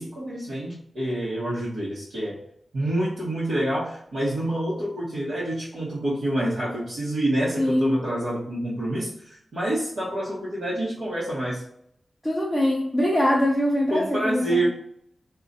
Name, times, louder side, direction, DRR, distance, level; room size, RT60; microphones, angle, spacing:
voice 1, 0.0-2.4 2.7-11.6 13.9-14.7, right 1 dB, 75° right, -10 dB, 1.1 m, -27 dB
voice 2, 7.6-8.0 12.2-14.7, left 1 dB, 5° left, -4 dB, 0.5 m, -23 dB
3.8 x 2.4 x 4.0 m, 0.71 s
wide cardioid pair, 175°, 0 cm